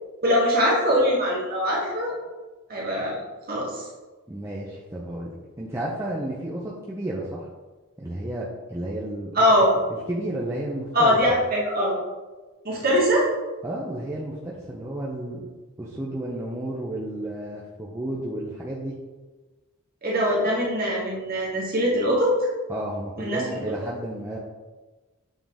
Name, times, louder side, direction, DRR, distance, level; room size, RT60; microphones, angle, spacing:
voice 1, 0.2-2.1 2.7-3.2 3.5-3.8 9.3-9.7 10.9-11.9 12.6-13.3 20.0-22.3 23.2-23.4, equal, 40° right, -3 dB, 1.4 m, -22 dB
voice 2, 4.3-7.5 8.0-9.4 9.9-11.2 13.6-15.5 15.8-18.9 22.7-24.4, right 1 dB, 10° right, -5 dB, 0.5 m, -32 dB
7.3 x 3.7 x 3.5 m, 1.2 s
head